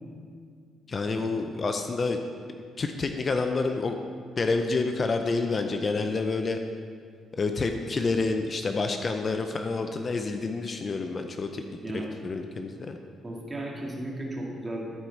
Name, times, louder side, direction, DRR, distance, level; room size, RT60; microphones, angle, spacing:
voice 1, 0.9-2.2 2.8-4.0 4.4-6.6 7.3-11.6 11.9-13.0, left 3 dB, 40° left, 6 dB, 0.5 m, -28 dB
voice 2, 13.2-14.9, right 1 dB, 20° right, -3 dB, 2.0 m, -35 dB
13.5 x 4.8 x 4.4 m, 2.2 s
cardioid pair, 90°, 0 cm